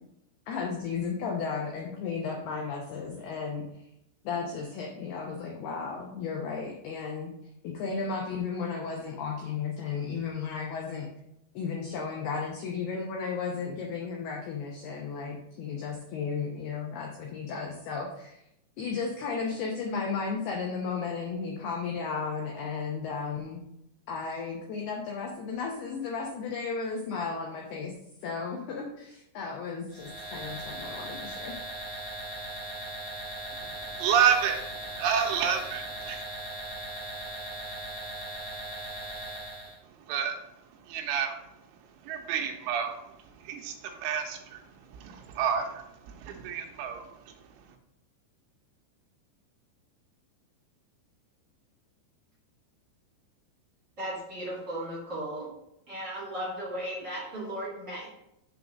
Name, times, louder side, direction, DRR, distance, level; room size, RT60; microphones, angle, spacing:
voice 1, 0.5-3.6 4.2-7.3 7.6-11.1 11.5-18.4 18.8-23.6 24.1-27.9 28.2-31.6 31.9-32.1, left 5 dB, 80° left, 2.2 m, -34 dB
sound 1, 29.9-39.8, right 1 dB, 15° right, 0.4 m, -39 dB
voice 2, 34.0-34.6 35.0-36.2 40.1-40.4 40.9-41.4 42.0-43.0 43.4-44.6 44.9-47.1, right 8 dB, 85° right, 3.1 m, -29 dB
voice 3, 54.0-55.5 55.9-58.1, right 1 dB, 40° right, 1.5 m, -36 dB
7.4 x 3.9 x 5.9 m
omnidirectional pair, 5.7 m